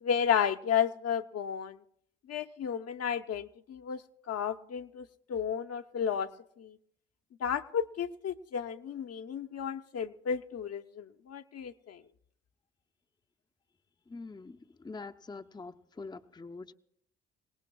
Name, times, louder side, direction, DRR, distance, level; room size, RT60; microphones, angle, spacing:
voice 1, 0.0-1.8 2.3-4.0 4.3-6.3 6.6-6.8 7.4-12.0, left 8 dB, 50° left, 7 dB, 0.8 m, -32 dB
voice 2, 14.1-16.7, left 3 dB, 15° left, 6 dB, 0.7 m, -45 dB
29.0 x 18.5 x 2.3 m, 0.69 s
hypercardioid pair, 50°, 32 cm